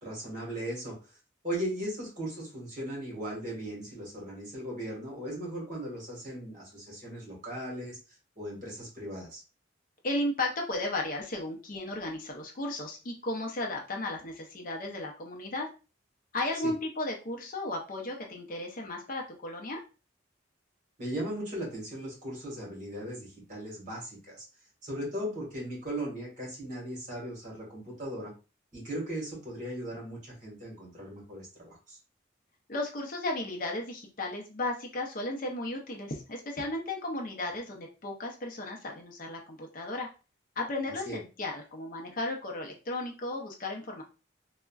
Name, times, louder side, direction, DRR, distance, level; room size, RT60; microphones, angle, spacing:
voice 1, 0.0-0.9 1.4-8.0 8.4-9.4 16.6-16.7 21.0-24.5 24.8-28.3 28.7-32.0 41.0-41.2, right 1 dB, 40° right, -3 dB, 1.3 m, -37 dB
voice 2, 10.0-15.7 16.3-19.8 32.7-40.1 40.6-44.0, left 2 dB, 45° left, 1 dB, 0.5 m, -34 dB
3.5 x 2.1 x 2.2 m, 0.32 s
head